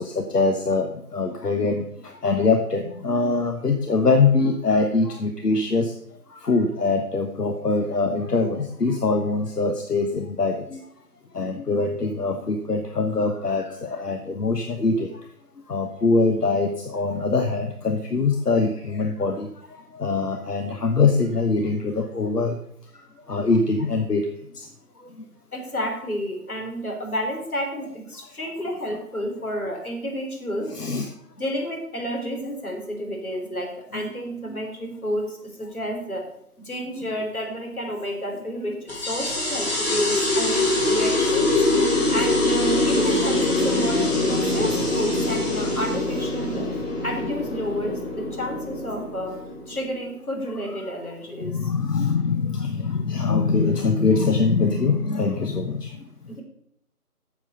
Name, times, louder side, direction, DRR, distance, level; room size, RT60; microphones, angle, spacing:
voice 1, 0.0-6.0 6.3-10.9 11.3-15.3 15.6-22.6 22.9-24.7 25.0-25.3 30.7-31.1 33.9-34.0 34.5-34.6 44.6-44.7 50.8-50.9 51.4-56.1, left 3 dB, 85° left, 6 dB, 1.3 m, -23 dB
voice 2, 25.5-30.8 31.3-36.3 36.6-41.6 41.8-46.7 47.0-49.4 49.7-51.7 56.3-56.4, equal, 65° left, 2 dB, 3.8 m, -30 dB
sound 1, 38.9-49.9, left 2 dB, 40° left, 3.8 m, -23 dB
10.5 x 7.5 x 5.7 m, 0.71 s
figure-of-eight pair, 175°, 46 cm